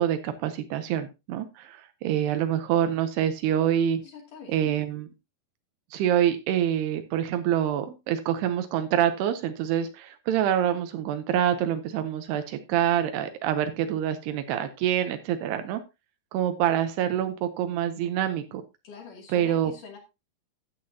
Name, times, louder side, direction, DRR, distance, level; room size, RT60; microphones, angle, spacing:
voice 1, 0.0-4.0 4.5-5.1 5.9-15.8 16.3-18.6 19.3-19.7, right 10 dB, 85° right, 2.9 m, -26 dB
voice 2, 4.0-4.7 18.8-20.0, left 5 dB, 55° left, 3.9 m, -44 dB
12.5 x 8.5 x 2.7 m
omnidirectional pair, 4.6 m